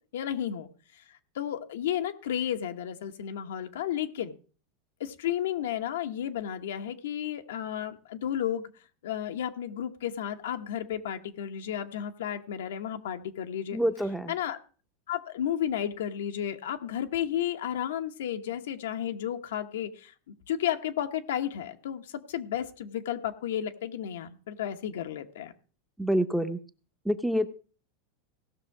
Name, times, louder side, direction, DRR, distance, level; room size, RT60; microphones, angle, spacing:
voice 1, 0.1-4.4 5.0-8.7 9.0-13.8 14.3-14.6 15.1-25.5, left 10 dB, 90° left, 7 dB, 1.1 m, -33 dB
voice 2, 13.7-14.3 26.0-26.6 27.0-27.5, equal, ahead, 9 dB, 0.7 m, -27 dB
17.0 x 6.3 x 4.7 m, 0.39 s
supercardioid pair, 145°, 0 cm